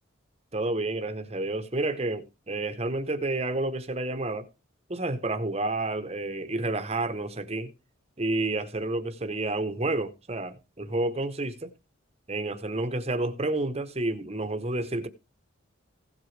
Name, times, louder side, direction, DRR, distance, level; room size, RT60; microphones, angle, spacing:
voice 1, 0.5-4.5 4.9-7.7 8.2-11.7 12.3-15.1, right 2 dB, 30° right, 0.9 m, -30 dB
16.0 x 7.8 x 3.3 m
head